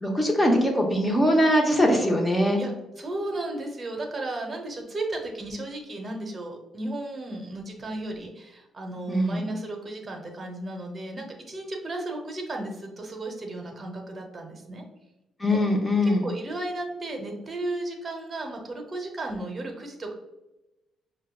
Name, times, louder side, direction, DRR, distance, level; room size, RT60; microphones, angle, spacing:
voice 1, 0.0-2.6 9.1-9.5 15.4-16.3, equal, 10° left, 1 dB, 0.8 m, -22 dB
voice 2, 2.6-14.8 15.5-15.6 16.2-20.1, right 2 dB, 35° right, 2 dB, 0.8 m, -34 dB
5.5 x 2.3 x 2.3 m, 0.99 s
cardioid pair, 90°, 0 cm